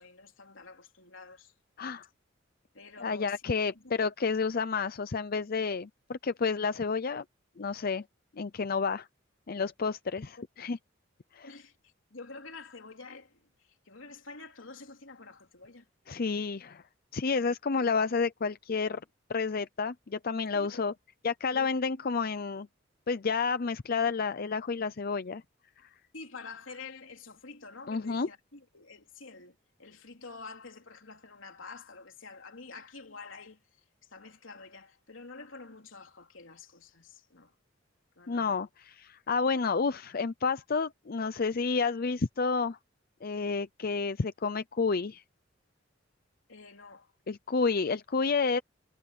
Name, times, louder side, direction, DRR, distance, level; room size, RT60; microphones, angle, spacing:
voice 1, 0.0-1.5 2.7-3.4 3.7-3.8 11.4-13.5 13.9-15.9 20.5-20.8 21.5-21.7 26.1-33.8 34.1-37.5 38.2-38.6 46.5-47.1, left 4 dB, 80° left, 3.5 m, -48 dB
voice 2, 3.0-7.2 7.6-8.0 8.4-9.1 9.5-10.8 11.3-11.5 16.1-16.8 17.1-19.0 19.3-20.9 21.2-22.7 23.1-25.4 25.8-25.9 27.9-28.3 38.3-42.8 43.2-45.2 47.3-48.6, left 4 dB, 50° left, 0.6 m, -30 dB
head